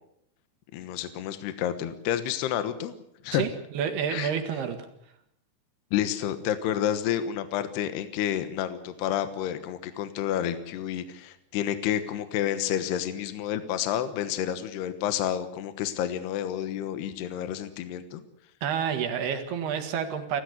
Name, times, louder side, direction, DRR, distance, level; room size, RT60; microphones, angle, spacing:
voice 1, 0.7-3.0 3.2-3.4 4.1-4.3 5.9-18.2, left 10 dB, 75° left, 10 dB, 3.2 m, -30 dB
voice 2, 3.3-4.8 18.6-20.4, right 8 dB, 70° right, 7 dB, 3.5 m, -29 dB
29.5 x 13.5 x 8.1 m, 0.76 s
omnidirectional pair, 5.1 m